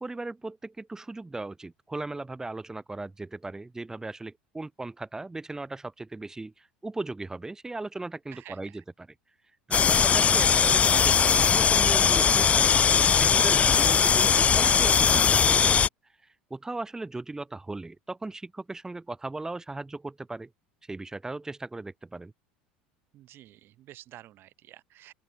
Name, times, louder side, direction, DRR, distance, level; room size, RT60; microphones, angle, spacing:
voice 1, 0.0-9.1 9.7-12.8 13.1-15.8 16.5-20.5 20.9-22.3, right 2 dB, 10° right, 0.9 m, -37 dB
voice 2, 8.3-8.8 23.1-25.1, right 14 dB, 45° right, 1.5 m, -50 dB
sound 1, 9.7-15.9, left 7 dB, 25° left, 0.4 m, -20 dB
open air
hypercardioid pair, 75°, 5 cm